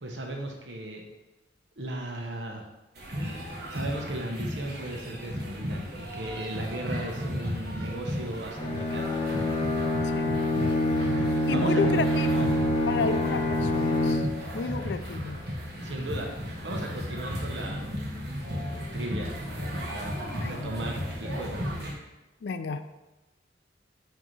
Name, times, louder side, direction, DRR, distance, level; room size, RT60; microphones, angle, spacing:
voice 1, 0.0-1.1 1.8-2.7 3.7-9.2 11.5-12.5 15.8-16.3 16.6-17.9 18.9-19.4 19.8-21.6, right 1 dB, 80° right, 1 dB, 1.0 m, -36 dB
sound 1, 3.0-21.9, equal, 65° right, 1.3 m, -35 dB
Bowed string instrument, 8.6-14.5, left 1 dB, 30° left, 0.8 m, -26 dB
voice 2, 11.3-12.6 12.9-14.3 14.5-15.4 20.4-20.7 22.4-22.8, left 5 dB, 70° left, 10 dB, 0.4 m, -31 dB
6.1 x 2.9 x 5.4 m, 1.1 s
head